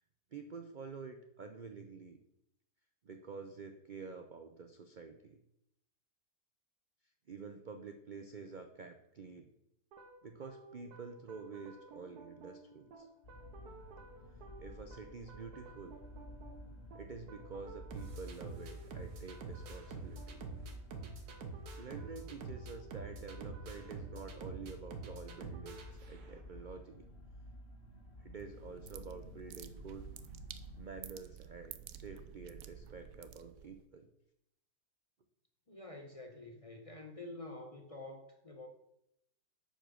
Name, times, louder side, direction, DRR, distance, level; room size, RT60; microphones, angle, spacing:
voice 1, 0.3-2.2 3.0-5.4 7.3-9.5 10.2-13.1 14.6-16.0 16.9-20.5 21.8-27.0 28.2-30.1 30.8-34.1, right 5 dB, 50° right, 0.5 m, -48 dB
sound 1, 9.9-26.6, right 3 dB, 85° right, 1.6 m, -49 dB
sound 2, 13.2-30.8, left 1 dB, 45° left, 1.5 m, -53 dB
sound 3, 28.4-33.8, right 9 dB, 70° right, 1.0 m, -51 dB
voice 2, 35.7-38.7, left 2 dB, 30° left, 0.8 m, -48 dB
8.8 x 5.4 x 6.3 m
omnidirectional pair, 1.6 m